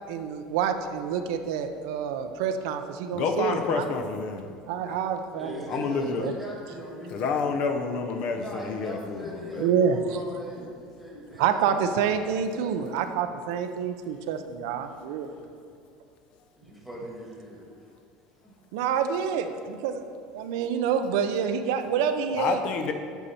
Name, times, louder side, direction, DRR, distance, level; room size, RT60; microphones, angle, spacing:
voice 1, 0.1-3.8 4.7-6.3 9.6-10.0 11.4-15.6 18.7-19.4 19.8-20.1 20.3-22.6, right 7 dB, 90° right, 7 dB, 0.5 m, -27 dB
voice 2, 3.1-4.5 4.9-5.0 5.7-6.3 7.1-9.8 22.4-22.9, left 5 dB, 50° left, 5 dB, 0.6 m, -29 dB
voice 3, 5.3-7.5 8.3-13.0 16.6-17.6 18.4-18.5, equal, ahead, -4 dB, 1.4 m, -40 dB
8.1 x 5.6 x 4.2 m, 2.2 s
cardioid pair, 160°, 2 cm